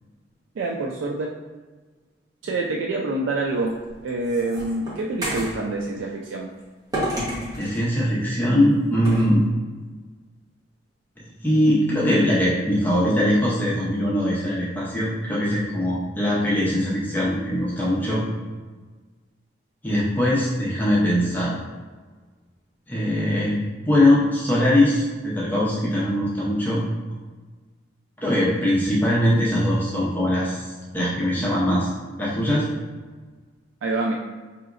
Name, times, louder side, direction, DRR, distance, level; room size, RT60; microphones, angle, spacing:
voice 1, 0.6-1.3 2.4-3.7 4.0-6.5 33.8-34.1, right 2 dB, 85° right, -1 dB, 0.3 m, -26 dB
sound 1, 3.7-5.6 6.9-7.8 9.0-9.3, right 1 dB, 20° right, 1.0 m, -29 dB
voice 2, 7.5-9.5 11.4-18.2 19.8-21.5 22.9-23.6 23.9-26.8 28.2-32.7, left 1 dB, 10° left, -7 dB, 0.6 m, -21 dB
4.7 x 2.9 x 2.4 m, 1.4 s
head